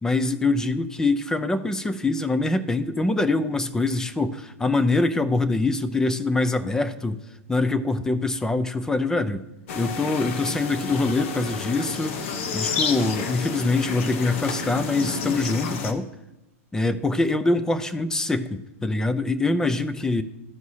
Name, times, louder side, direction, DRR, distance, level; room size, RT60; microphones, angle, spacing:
voice 1, 0.0-7.2 7.5-9.4 9.8-12.2 12.5-16.1 16.7-20.2, left 2 dB, 5° left, 11 dB, 0.5 m, -24 dB
sound 1, 9.7-15.9, left 5 dB, 60° left, 1.0 m, -30 dB
13.5 x 4.6 x 2.8 m, 0.99 s
hypercardioid pair, 130°, 8 cm